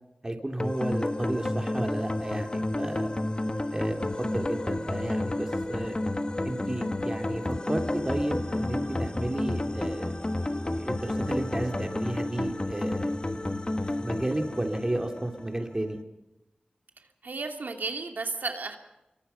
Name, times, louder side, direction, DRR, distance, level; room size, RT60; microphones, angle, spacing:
voice 1, 0.2-3.1 3.7-6.0 6.4-7.4 7.7-10.2 10.7-13.1 14.0-16.0, right 1 dB, 20° right, 4 dB, 3.0 m, -32 dB
sound 1, 0.6-15.7, left 1 dB, 30° left, 1.5 m, -31 dB
voice 2, 17.2-18.8, right 4 dB, 85° right, 4 dB, 2.5 m, -33 dB
26.5 x 23.5 x 5.7 m, 0.95 s
wide cardioid pair, 70°, 3 cm